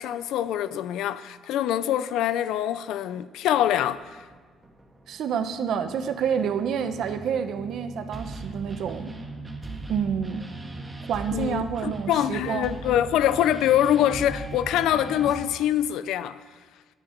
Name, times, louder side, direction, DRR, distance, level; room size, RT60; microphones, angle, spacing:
voice 1, 0.0-4.2 11.3-16.4, left 11 dB, 90° left, 0.6 m, -24 dB
sound 1, 3.7-15.4, right 2 dB, 15° right, 1.7 m, -39 dB
voice 2, 5.1-9.2 9.9-10.5 11.1-12.7, right 7 dB, 65° right, 1.0 m, -28 dB
23.5 x 8.9 x 4.6 m
cardioid pair, 135°, 0 cm